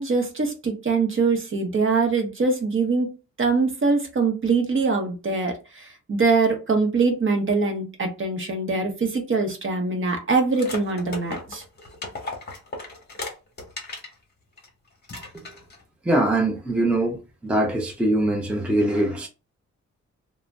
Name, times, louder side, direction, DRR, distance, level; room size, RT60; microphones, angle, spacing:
voice 1, 0.0-3.1 3.4-11.6, right 4 dB, 45° right, 0.7 m, -23 dB
sound 1, 10.5-14.1 14.6-14.7 15.0-15.8, left 2 dB, 35° left, 0.9 m, -36 dB
voice 2, 16.0-17.2 17.4-19.3, right 1 dB, 5° right, 0.5 m, -22 dB
2.5 x 2.0 x 3.3 m
wide cardioid pair, 120°, 29 cm